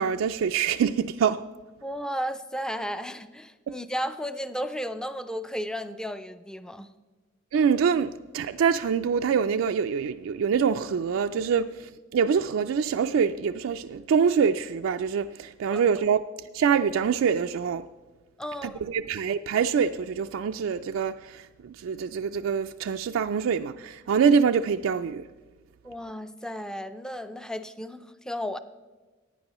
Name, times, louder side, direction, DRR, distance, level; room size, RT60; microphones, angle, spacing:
voice 1, 0.0-1.4 3.7-3.8 7.5-16.2 16.5-17.8 18.6-25.2, right 6 dB, 80° right, 0.3 m, -25 dB
voice 2, 1.8-6.9 15.7-15.8 18.4-18.8 25.8-28.6, equal, 5° left, 0.4 m, -34 dB
16.0 x 9.6 x 3.0 m
head